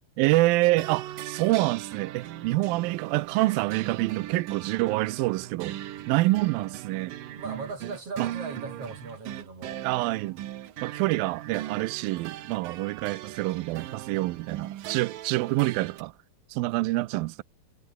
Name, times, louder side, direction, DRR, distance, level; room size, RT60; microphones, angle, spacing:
voice 1, 0.2-5.8 6.1-7.2 8.2-8.3 9.8-10.4 10.8-16.1 16.5-17.4, right 20 dB, 90° right, 2.1 m, -26 dB
sound 1, 0.8-16.0, right 13 dB, 65° right, 2.6 m, -39 dB
voice 2, 7.4-9.9, right 3 dB, 35° right, 7.3 m, -38 dB
omnidirectional pair, 4.9 m